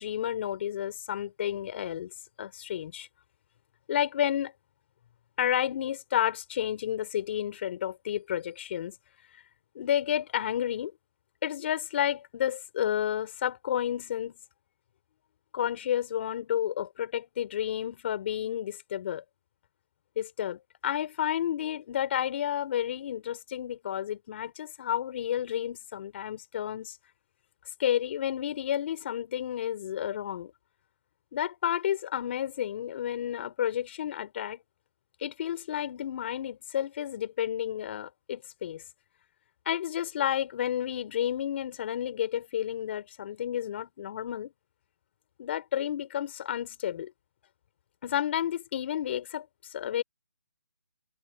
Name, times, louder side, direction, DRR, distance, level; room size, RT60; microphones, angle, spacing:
voice 1, 0.0-2.1 2.4-3.1 3.9-4.5 5.4-9.0 9.7-10.9 11.4-14.3 15.5-19.2 20.2-27.0 27.8-30.5 31.3-34.6 35.2-38.8 39.6-44.5 45.4-47.1 48.0-50.0, left 10 dB, 35° left, 3.2 m, -31 dB
hypercardioid pair, 160°, 10 cm